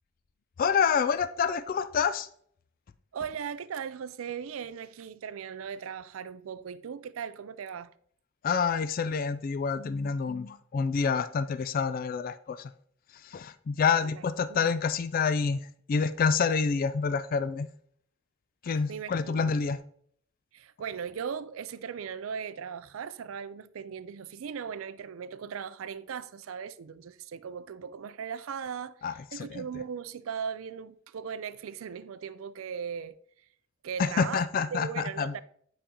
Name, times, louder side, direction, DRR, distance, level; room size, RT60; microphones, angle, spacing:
voice 1, 0.6-2.3 8.4-12.7 13.1-15.6 15.9-17.7 18.6-19.8 29.0-29.8 34.0-35.4, left 6 dB, 45° left, 0.3 m, -28 dB
voice 2, 3.1-7.9 14.0-14.1 14.5-14.7 18.9-19.6 20.5-29.0 29.3-33.1 33.8-34.4 34.7-35.4, right 7 dB, 90° right, 0.4 m, -38 dB
9.3 x 5.0 x 2.9 m
head